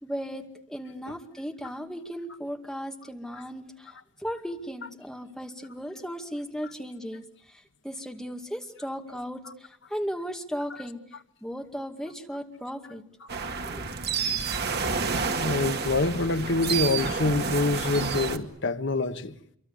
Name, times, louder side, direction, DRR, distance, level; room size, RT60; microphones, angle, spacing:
voice 1, 0.0-11.0 11.4-13.0 13.6-13.9, equal, 5° left, 2.2 m, -36 dB
sound 1, 13.3-18.4, right 5 dB, 55° right, 2.1 m, -29 dB
voice 2, 15.3-19.3, left 2 dB, 65° left, 1.4 m, -26 dB
28.0 x 24.0 x 8.2 m
head